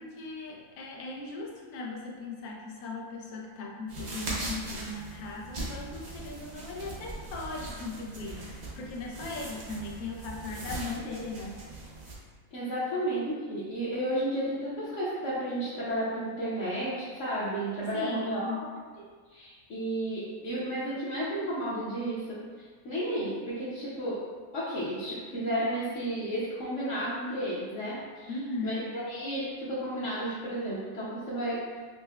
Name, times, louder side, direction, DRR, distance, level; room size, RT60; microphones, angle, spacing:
voice 1, 0.0-11.6 17.9-18.6 28.3-28.8, left 3 dB, 90° left, -2 dB, 1.1 m, -38 dB
sound 1, 3.9-12.1, right 2 dB, 55° right, 1.0 m, -40 dB
voice 2, 12.5-18.6 19.3-24.2 24.5-28.3 28.6-31.8, right 1 dB, 60° left, -11 dB, 1.1 m, -32 dB
5.7 x 2.1 x 2.2 m, 1.5 s
omnidirectional pair, 1.5 m